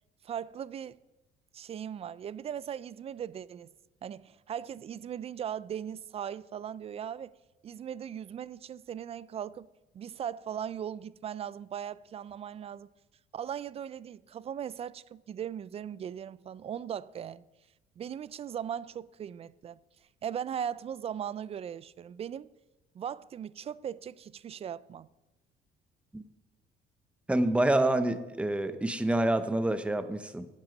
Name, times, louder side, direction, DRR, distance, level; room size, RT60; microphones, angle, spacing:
voice 1, 0.2-1.0 1.5-3.7 4.0-7.3 7.6-9.7 9.9-12.9 13.3-17.4 18.0-19.8 20.2-22.5 22.9-25.1, right 9 dB, 35° right, 0.3 m, -38 dB
voice 2, 27.3-30.5, right 1 dB, 5° right, 0.8 m, -27 dB
11.0 x 9.0 x 5.2 m
cardioid pair, 110°, 17 cm